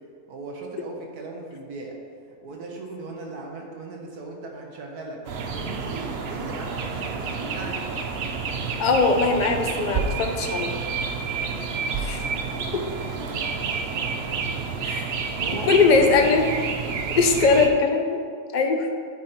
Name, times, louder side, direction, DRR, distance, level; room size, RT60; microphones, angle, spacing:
voice 1, 0.3-2.0 2.4-8.0 12.4-14.2 15.4-16.4, right 2 dB, 75° right, 0 dB, 1.6 m, -38 dB
sound 1, 5.2-17.7, right 5 dB, 60° right, 0.7 m, -29 dB
voice 2, 8.8-10.7 12.0-12.2 12.7-12.8 14.8-15.1 15.6-16.5 17.2-18.2 18.5-18.9, left 4 dB, 55° left, 4 dB, 0.5 m, -20 dB
9.2 x 5.1 x 4.4 m, 2.2 s
omnidirectional pair, 1.6 m